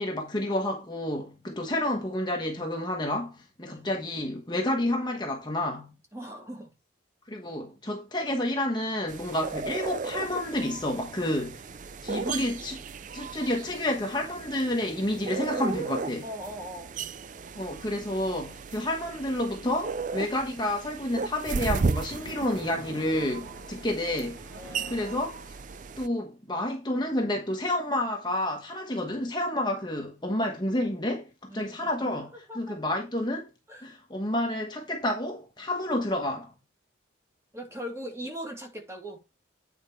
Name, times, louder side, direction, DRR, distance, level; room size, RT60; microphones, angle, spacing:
voice 1, 0.0-5.9 7.3-11.6 12.0-12.8 13.1-16.3 17.6-24.4 24.9-25.6 26.0-32.3 32.6-33.5 33.8-36.5, left 1 dB, 20° left, 1.3 m, -30 dB
voice 2, 3.6-3.9 6.1-6.7 16.2-17.1 24.6-25.1 31.5-32.1 32.5-32.8 33.7-33.9 37.5-39.2, equal, 15° right, 2.4 m, -40 dB
sound 1, 9.1-26.1, right 4 dB, 40° right, 0.4 m, -35 dB
Splash splatter, 22.0-26.1, right 1 dB, 65° right, 2.3 m, -46 dB
9.0 x 4.8 x 4.6 m
head